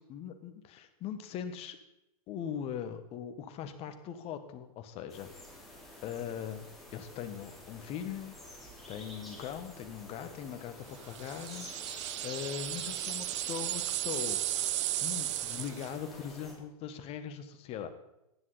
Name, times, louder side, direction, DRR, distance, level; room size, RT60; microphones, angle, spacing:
voice 1, 0.1-1.8 2.3-5.3 6.0-8.3 8.9-14.4 15.0-17.9, left 8 dB, 30° left, 9 dB, 1.4 m, -40 dB
sound 1, 5.1-16.5, left 1 dB, ahead, 3.3 m, -49 dB
sound 2, 11.1-16.0, right 15 dB, 50° right, 0.6 m, -35 dB
15.0 x 10.5 x 4.1 m, 0.88 s
hypercardioid pair, 120°, 19 cm